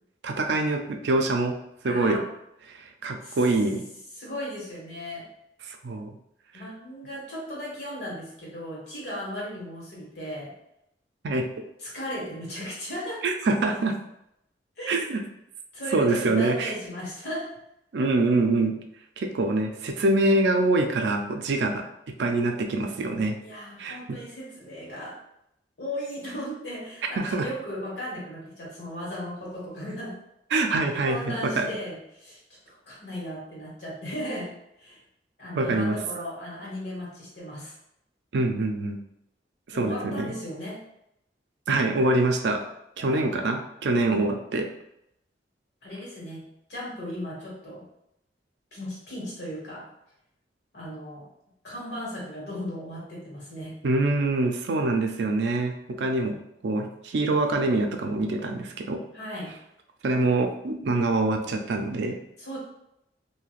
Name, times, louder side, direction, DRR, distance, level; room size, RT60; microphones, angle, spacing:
voice 1, 0.2-1.6 1.8-2.2 2.7-3.8 5.6-6.2 6.5-6.6 11.2-11.5 13.2-14.0 14.9-15.2 15.9-16.7 17.9-18.8 19.2-21.8 22.2-23.4 23.8-24.2 27.2-27.5 30.5-31.7 35.5-36.0 38.3-39.0 39.7-40.3 41.7-42.6 43.0-44.7 53.8-56.4 56.6-59.0 60.0-62.2, right 2 dB, 70° right, 4 dB, 0.4 m, -25 dB
voice 2, 1.8-2.2 3.2-3.5 4.1-5.3 6.5-10.5 11.8-13.2 14.8-15.1 15.7-17.5 23.4-25.2 25.8-30.1 31.0-32.4 32.7-34.5 34.8-35.0 35.4-37.7 39.7-40.8 43.0-43.5 45.8-47.8 48.7-49.9 50.7-51.3 51.6-53.8 59.1-59.6 62.4-62.6, equal, 70° left, -5 dB, 1.4 m, -36 dB
3.1 x 2.7 x 2.4 m, 0.79 s
head